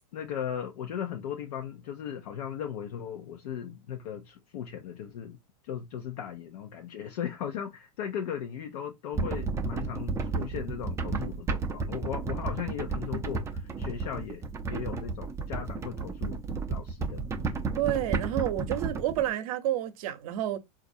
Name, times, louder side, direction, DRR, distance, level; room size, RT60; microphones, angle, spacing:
voice 1, 0.1-5.4 5.6-14.4 14.7-16.4 16.7-17.2, left 8 dB, 65° left, 0.6 m, -37 dB
sheet film, 9.1-19.2, right 4 dB, 15° right, 0.4 m, -32 dB
voice 2, 17.8-20.6, right 12 dB, 55° right, 0.8 m, -29 dB
3.9 x 2.5 x 2.6 m
hypercardioid pair, 120°, 21 cm